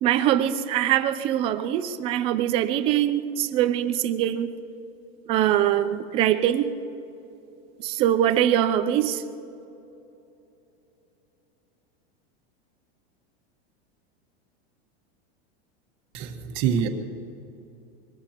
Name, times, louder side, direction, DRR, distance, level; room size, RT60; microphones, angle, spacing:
voice 1, 0.0-4.5 5.3-6.7 7.8-9.2, right 11 dB, 20° right, 10 dB, 0.3 m, -23 dB
voice 2, 16.1-16.9, right 8 dB, 40° right, 5 dB, 1.4 m, -25 dB
24.0 x 20.0 x 3.0 m, 2.9 s
supercardioid pair, 165°, 32 cm